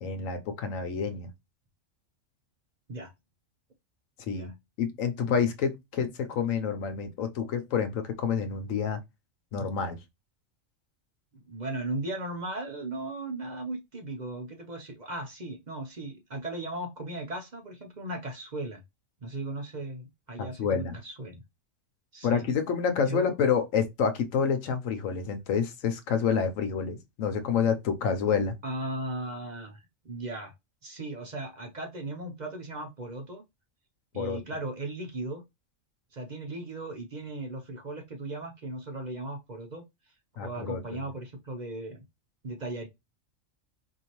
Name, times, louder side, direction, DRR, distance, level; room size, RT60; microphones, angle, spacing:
voice 1, 0.0-1.3 4.3-4.5 4.8-9.0 9.5-10.0 20.4-21.0 22.2-28.5 34.1-34.4 40.4-41.0, left 6 dB, 90° left, 1.1 m, -28 dB
voice 2, 11.3-18.8 19.2-21.4 22.1-22.4 23.1-23.2 28.6-30.5 30.8-33.4 34.1-35.4 36.1-39.8 40.4-42.0 42.4-42.9, right 2 dB, 45° right, 0.7 m, -37 dB
4.4 x 2.7 x 3.0 m
omnidirectional pair, 1.3 m